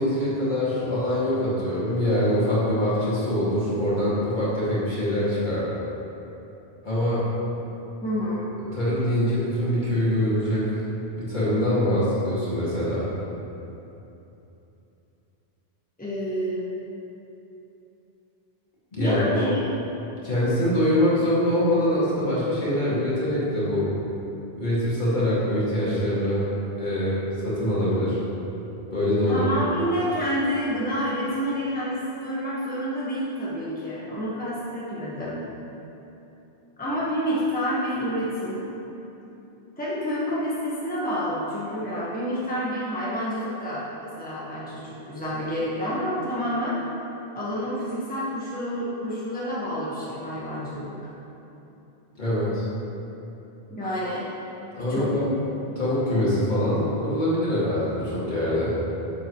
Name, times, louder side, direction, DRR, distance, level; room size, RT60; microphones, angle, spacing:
voice 1, 0.0-5.7 6.8-7.2 8.6-10.8 11.1-13.1 18.9-19.2 20.2-23.9 24.6-26.5 26.8-28.2 28.9-29.5 52.1-52.7 54.7-55.3 55.8-58.7, left 1 dB, 45° left, -9 dB, 2.3 m, -24 dB
voice 2, 8.0-8.5 16.0-16.7 19.0-19.6 29.3-35.4 36.8-38.7 39.8-46.8 47.3-51.0 53.7-54.3 54.9-55.1, equal, 10° left, -8 dB, 1.3 m, -28 dB
10.0 x 7.1 x 3.1 m, 3.0 s
omnidirectional pair, 1.1 m